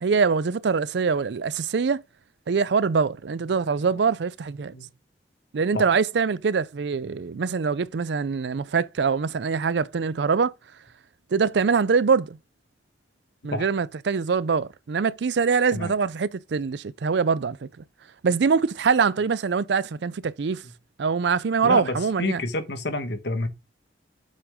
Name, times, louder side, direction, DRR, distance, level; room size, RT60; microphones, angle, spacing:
voice 1, 0.0-2.0 2.5-4.7 5.5-10.5 11.3-12.4 13.4-17.6 18.2-20.6 21.0-22.4, right 5 dB, 75° right, 0.4 m, -23 dB
voice 2, 21.6-23.5, left 2 dB, 70° left, 1.3 m, -29 dB
8.0 x 6.4 x 3.6 m
head